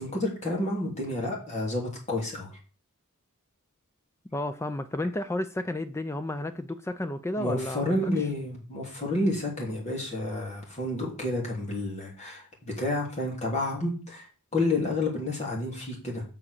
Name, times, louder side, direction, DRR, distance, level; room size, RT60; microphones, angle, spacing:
voice 1, 0.0-2.5 7.4-14.2 14.5-16.2, left 2 dB, 35° left, 3.3 m, -30 dB
voice 2, 4.3-8.1, left 1 dB, 10° left, 0.5 m, -32 dB
7.4 x 6.0 x 6.6 m
head